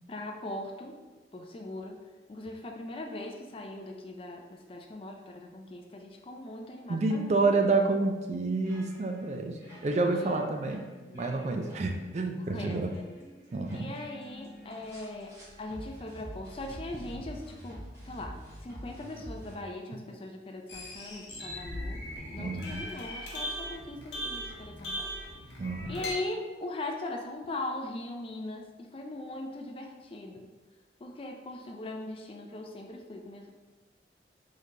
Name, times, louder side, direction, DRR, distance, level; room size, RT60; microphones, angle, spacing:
voice 1, 0.1-0.9 1.3-2.0 2.3-7.8 9.9-10.4 11.1-11.5 12.5-13.0 13.7-15.3 15.6-18.4 18.6-22.0 22.3-25.1 25.4-25.5 25.9-30.5 31.0-33.5, left 2 dB, 30° left, 2 dB, 0.4 m, -40 dB
voice 2, 6.9-10.9 11.1-12.9 13.5-13.9 22.4-22.8 25.6-26.0, right 3 dB, 40° right, 4 dB, 0.3 m, -29 dB
sound 1, 7.3-19.5, equal, 15° right, 1.2 m, -48 dB
sound 2, 20.7-26.1, equal, 80° left, 0.8 m, -39 dB
4.0 x 3.2 x 2.7 m, 1.2 s
head